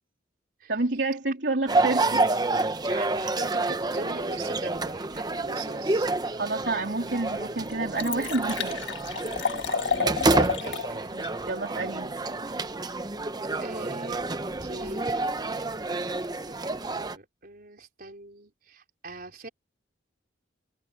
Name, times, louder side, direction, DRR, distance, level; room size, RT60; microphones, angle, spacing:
voice 1, 0.7-2.3 6.3-8.9 11.1-12.2, right 2 dB, 65° right, 3.4 m, -29 dB
sound 1, 1.7-17.2, right 2 dB, 20° right, 0.7 m, -28 dB
voice 2, 2.8-6.1 9.9-11.1 13.6-15.2 16.5-19.5, right 2 dB, 50° right, 4.7 m, -42 dB
Liquid, 6.8-6.9 7.3-7.4 7.6-10.9 11.2-11.3, left 5 dB, 70° left, 1.8 m, -30 dB
head